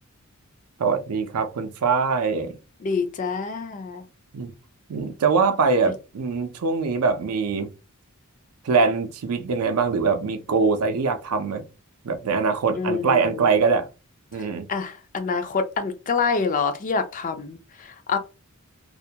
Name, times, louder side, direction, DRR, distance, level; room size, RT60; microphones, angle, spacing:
voice 1, 0.8-2.6 4.3-4.5 4.9-7.7 8.6-11.6 12.0-13.9 14.3-14.7, right 5 dB, 90° right, 0.5 m, -23 dB
voice 2, 2.8-4.0 12.8-13.4 14.7-18.2, left 5 dB, 35° left, 0.4 m, -26 dB
2.4 x 2.2 x 2.7 m
head